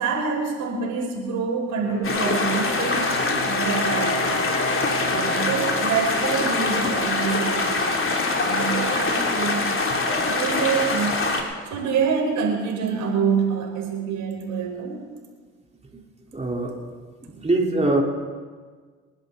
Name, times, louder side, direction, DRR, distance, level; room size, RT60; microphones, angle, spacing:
voice 1, 0.0-3.1 3.4-4.4 5.1-7.8 8.4-11.2 11.6-15.0, right 6 dB, 65° right, 0 dB, 4.9 m, -26 dB
Wind instrument woodwind instrument, 1.7-7.5, left 2 dB, 85° left, 2.8 m, -33 dB
sound 1, 2.0-11.4, left 3 dB, 40° left, 3.4 m, -24 dB
voice 2, 16.3-16.7 17.2-18.0, right 2 dB, 20° right, -1 dB, 4.4 m, -23 dB
28.5 x 11.0 x 4.1 m, 1.5 s
hypercardioid pair, 50°, 32 cm